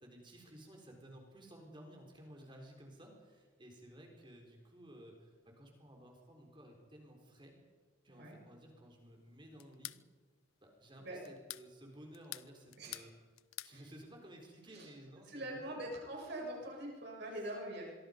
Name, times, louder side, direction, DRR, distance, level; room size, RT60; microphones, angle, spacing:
voice 1, 0.0-7.5 8.0-9.9 10.6-13.1 13.6-15.9, right 1 dB, 25° right, 1 dB, 4.2 m, -55 dB
voice 2, 8.1-8.4 11.0-11.2 12.8-13.1 13.7-13.8 14.7-14.9 15.3-17.9, right 1 dB, 50° right, -2 dB, 7.5 m, -44 dB
sound 1, 9.6-10.0 11.2-11.7 12.1-13.1 13.4-13.8, left 17 dB, 80° left, 0.6 m, -46 dB
25.5 x 23.0 x 5.3 m, 1.4 s
head